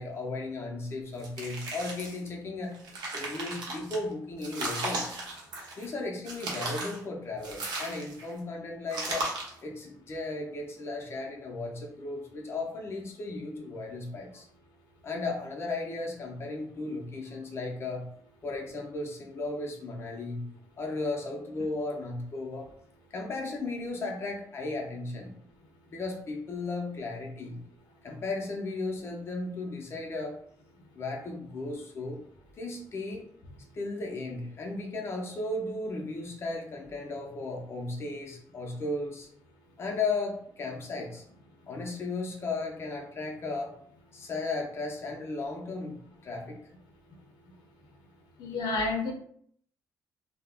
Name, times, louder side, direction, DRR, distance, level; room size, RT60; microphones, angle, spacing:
voice 1, 0.0-2.8 3.1-5.2 5.8-9.3 9.6-14.5 15.0-18.1 18.4-20.5 20.8-22.7 23.1-25.4 25.9-27.6 28.0-30.4 30.9-32.2 32.6-33.3 33.7-39.3 39.8-41.2 41.7-43.8 44.1-46.6, left 3 dB, 35° left, 0 dB, 0.5 m, -35 dB
sound 1, 1.2-2.3 2.7-4.0 4.4-5.9 6.2-7.0 7.4-8.3 8.9-9.6, right 2 dB, 90° right, 0.8 m, -36 dB
voice 2, 48.4-49.1, left 3 dB, 85° left, 2 dB, 0.5 m, -29 dB
2.3 x 2.0 x 3.4 m, 0.63 s
cardioid pair, 125°, 7 cm